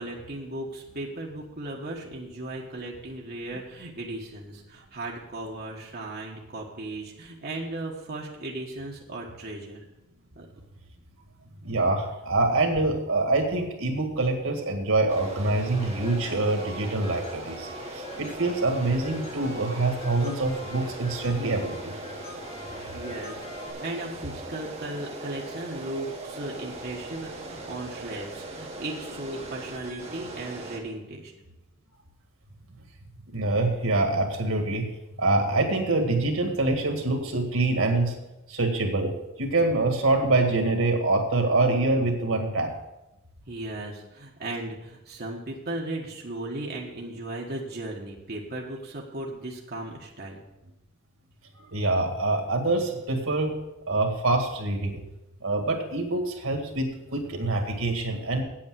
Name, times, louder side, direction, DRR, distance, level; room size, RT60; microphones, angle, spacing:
voice 1, 0.0-9.8 10.3-10.5 22.7-31.3 43.5-50.4, right 2 dB, 50° right, -2 dB, 1.5 m, -36 dB
voice 2, 11.6-21.9 33.3-34.8 35.2-38.2 38.5-39.1 39.4-42.7 51.7-53.5 53.9-55.0 55.4-58.4, right 2 dB, 80° right, 4 dB, 1.9 m, -25 dB
sound 1, 15.1-30.8, right 2 dB, 30° right, 1.8 m, -40 dB
sound 2, 15.7-23.7, left 2 dB, 35° left, 3.7 m, -43 dB
8.7 x 8.6 x 6.3 m, 0.94 s
head